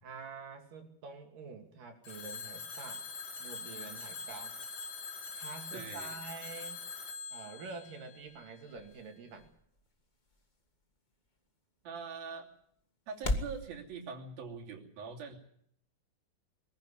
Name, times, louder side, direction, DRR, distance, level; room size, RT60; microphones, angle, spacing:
voice 1, 0.0-3.0 3.4-4.5 5.3-6.8 7.3-9.5, right 4 dB, 70° right, 4 dB, 4.0 m, -47 dB
Telephone, 2.0-8.9, left 5 dB, 60° left, 3.9 m, -44 dB
voice 2, 5.7-6.2 11.8-12.5 13.1-15.4, right 5 dB, 85° right, 0 dB, 4.8 m, -43 dB
sound 1, 7.3-13.6, left 1 dB, 35° left, 0.7 m, -42 dB
22.5 x 15.0 x 9.9 m, 0.67 s
omnidirectional pair, 4.1 m